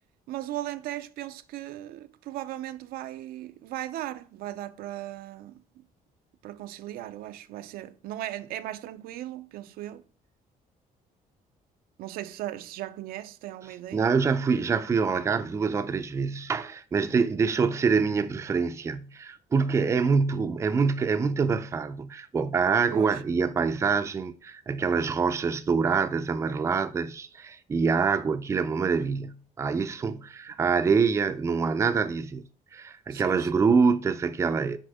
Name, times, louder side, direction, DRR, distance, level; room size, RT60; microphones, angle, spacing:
voice 1, 0.3-5.6 6.4-10.0 12.0-14.1 22.9-23.2 33.1-33.6, right 14 dB, 90° right, 0.5 m, -37 dB
voice 2, 13.9-34.8, right 5 dB, 20° right, 0.4 m, -25 dB
6.3 x 4.8 x 3.5 m
cardioid pair, 155°, 15 cm